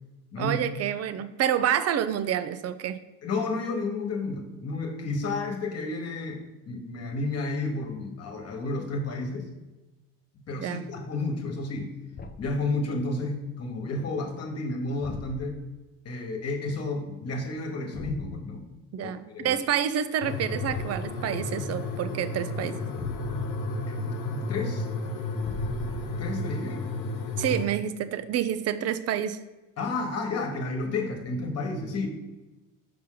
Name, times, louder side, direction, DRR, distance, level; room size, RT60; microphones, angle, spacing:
voice 1, 0.4-3.0 10.6-10.8 18.9-22.8 27.4-29.4, right 10 dB, 45° right, 12 dB, 0.6 m, -28 dB
voice 2, 3.2-9.5 10.5-11.9 12.4-15.6 16.0-18.6 19.0-19.6 23.9-24.9 26.1-26.8 29.8-32.1, left 3 dB, 45° left, 3 dB, 1.4 m, -31 dB
Thump thud, 12.1-12.6 15.0-15.7 17.9-18.4 20.7-21.2 23.0-23.6 25.4-26.4, left 3 dB, 30° left, 0.5 m, -41 dB
sound 1, 20.2-27.7, left 2 dB, 75° left, 1.1 m, -32 dB
5.7 x 5.3 x 3.9 m, 1.1 s
supercardioid pair, 85°, 34 cm